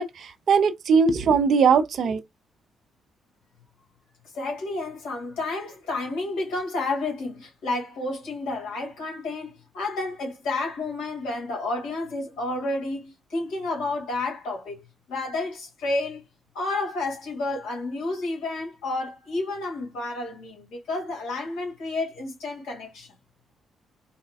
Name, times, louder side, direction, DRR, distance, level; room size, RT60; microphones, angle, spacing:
voice 1, 0.0-2.2, right 5 dB, 60° right, 0.5 m, -20 dB
voice 2, 4.3-14.8 15.1-16.2 16.5-23.1, left 2 dB, 70° left, 1.9 m, -30 dB
4.2 x 2.2 x 2.3 m
hypercardioid pair, 45°, 0 cm